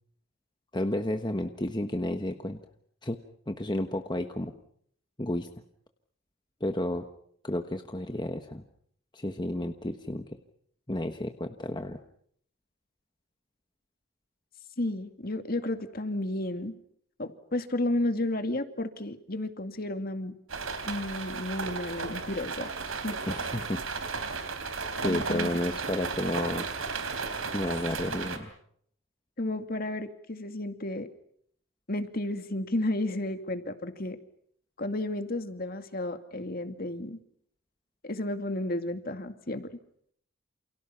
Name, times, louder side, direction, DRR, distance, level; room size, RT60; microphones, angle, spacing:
voice 1, 0.7-2.6 3.0-3.2 3.5-4.5 5.2-5.5 6.6-7.0 7.4-8.6 9.1-10.3 10.9-12.0 23.3-23.8 25.0-26.7 27.5-28.5, left 1 dB, 20° left, 6 dB, 1.3 m, -31 dB
voice 2, 14.8-16.8 17.2-20.3 20.8-22.7 23.0-23.2 25.0-25.5 29.4-31.1 31.9-34.2 34.8-37.2 38.0-39.7, left 1 dB, 45° left, 7 dB, 2.3 m, -32 dB
sound 1, 20.5-28.4, right 4 dB, 85° right, 3.9 m, -34 dB
29.0 x 28.5 x 5.8 m, 0.67 s
head